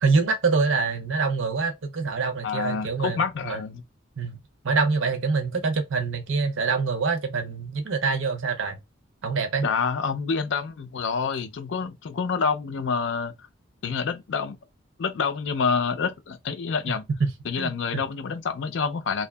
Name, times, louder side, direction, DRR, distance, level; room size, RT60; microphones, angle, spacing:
voice 1, 0.0-3.6 4.2-4.4 4.6-8.8 9.2-9.7 17.6-18.0, right 4 dB, 80° right, 0.6 m, -25 dB
voice 2, 2.4-3.8 9.6-13.3 13.8-14.6 15.0-17.1 17.4-19.3, left 5 dB, 70° left, 0.4 m, -27 dB
2.7 x 2.3 x 2.2 m
head